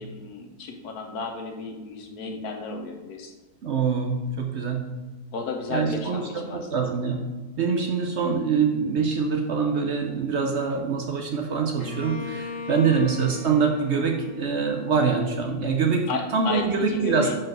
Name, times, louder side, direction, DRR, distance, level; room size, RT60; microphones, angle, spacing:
voice 1, 0.0-3.3 5.3-6.9 12.7-13.0 16.1-17.3, left 4 dB, 80° left, 3 dB, 1.4 m, -34 dB
voice 2, 3.6-4.9 5.7-6.2 6.5-7.3 7.6-17.3, right 5 dB, 60° right, 3 dB, 0.8 m, -24 dB
Bowed string instrument, 11.8-15.5, left 4 dB, 60° left, 1.3 m, -39 dB
4.9 x 4.7 x 6.0 m, 1.2 s
omnidirectional pair, 1.6 m